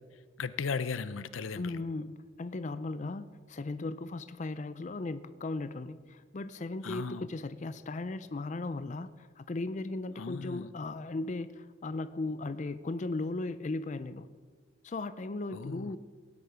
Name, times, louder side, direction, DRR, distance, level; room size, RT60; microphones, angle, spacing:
voice 1, 0.4-1.8 6.8-7.3 10.2-10.7 15.5-16.0, left 5 dB, 90° left, 14 dB, 0.6 m, -36 dB
voice 2, 1.5-14.3 14.8-16.0, left 2 dB, 40° left, 12 dB, 0.4 m, -37 dB
17.0 x 9.6 x 5.0 m, 1.5 s
head